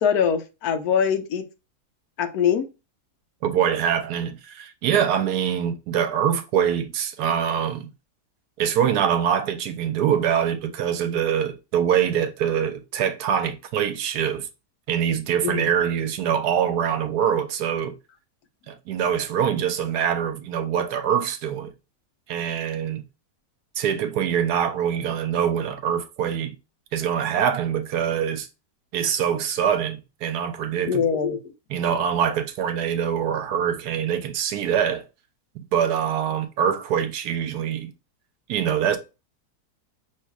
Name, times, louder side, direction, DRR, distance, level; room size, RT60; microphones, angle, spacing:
voice 1, 0.0-1.4 2.2-2.7 15.4-15.7 30.9-31.4, left 7 dB, 75° left, 1.1 m, -22 dB
voice 2, 3.4-7.9 8.6-14.5 14.9-17.9 18.7-21.7 22.3-23.0 23.8-26.5 26.9-28.5 28.9-31.1 31.7-35.0 35.7-37.9 38.5-39.0, right 8 dB, 80° right, 1.2 m, -24 dB
5.6 x 3.1 x 2.3 m
omnidirectional pair, 1.7 m